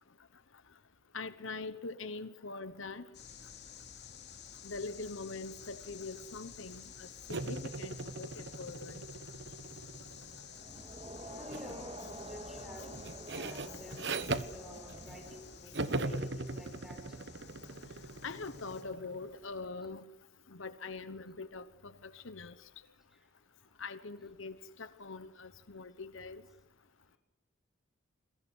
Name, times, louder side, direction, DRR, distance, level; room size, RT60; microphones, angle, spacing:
voice 1, 1.1-3.1 4.6-9.0 12.8-12.9 15.9-16.0 18.2-20.0 20.5-22.5 23.8-26.4, left 3 dB, 75° left, 1.1 m, -43 dB
sound 1, 3.1-18.8, left 7 dB, 50° left, 3.5 m, -52 dB
sound 2, 7.3-10.6 11.5-11.8 12.2-15.4 15.7-19.3, right 2 dB, 55° right, 1.2 m, -40 dB
Crowd, 10.5-15.7, right 1 dB, 30° right, 2.3 m, -48 dB
voice 2, 11.2-17.2 23.1-23.3, left 1 dB, ahead, 6.2 m, -50 dB
29.5 x 23.0 x 6.4 m
head